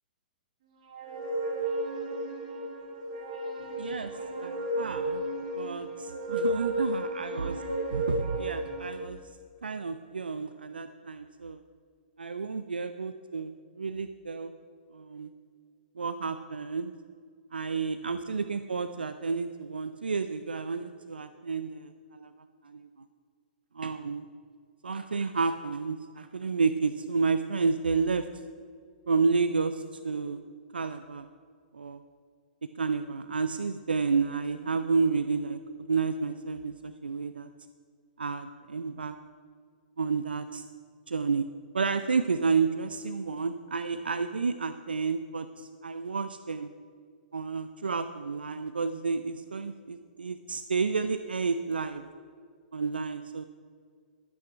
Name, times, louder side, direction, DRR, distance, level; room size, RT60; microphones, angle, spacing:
sound 1, 0.9-9.0, right 1 dB, 50° right, 2.4 m, -33 dB
voice 1, 3.8-4.1 4.4-5.2 5.6-7.6 7.9-9.2 9.6-11.6 12.2-14.5 14.9-15.3 16.0-16.9 17.5-22.3 22.6-22.9 23.7-24.3 24.8-28.3 29.1-30.4 30.7-31.3 31.7-32.0 32.6-37.5 38.2-39.2 40.0-40.6 41.1-41.4 41.7-46.7 47.3-52.0 52.7-53.4, right 4 dB, 85° right, 11 dB, 0.5 m, -30 dB
12.5 x 8.9 x 5.7 m, 2.1 s
figure-of-eight pair, 120°, 5 cm